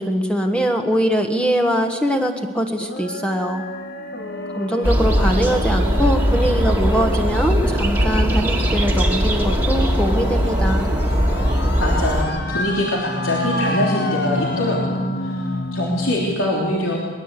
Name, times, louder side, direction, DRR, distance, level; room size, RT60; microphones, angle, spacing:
voice 1, 0.0-3.6 4.5-10.9, equal, 5° left, 4 dB, 1.3 m, -22 dB
sound 1, 2.8-16.4, left 1 dB, 50° left, 1.4 m, -28 dB
sound 2, 4.8-12.2, equal, 10° right, 1.8 m, -20 dB
voice 2, 11.4-17.0, left 1 dB, 85° left, -2 dB, 3.2 m, -24 dB
22.0 x 20.0 x 8.3 m, 1.5 s
head